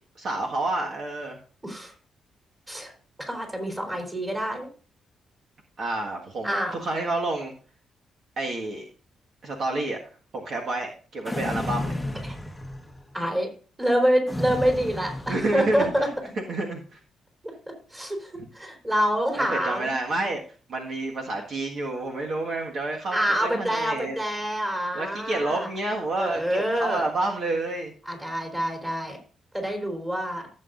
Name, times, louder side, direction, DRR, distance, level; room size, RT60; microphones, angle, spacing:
voice 1, 0.2-1.4 5.8-6.5 6.8-7.5 8.4-8.8 9.4-10.0 10.3-12.0 15.3-15.9 16.4-17.0 18.3-18.4 19.3-20.4 20.7-24.1 24.9-27.9, right 2 dB, 55° right, 0 dB, 1.6 m, -29 dB
voice 2, 3.3-4.7 6.4-6.9 13.1-13.5 13.8-16.1 17.9-19.9 23.1-25.7 26.2-27.0 28.1-29.2 29.5-30.5, equal, 15° right, 3 dB, 3.6 m, -26 dB
sound 1, 11.2-13.1 14.3-16.1, left 1 dB, 5° left, 1.0 m, -33 dB
15.5 x 7.8 x 2.6 m, 0.40 s
cardioid pair, 130°, 0 cm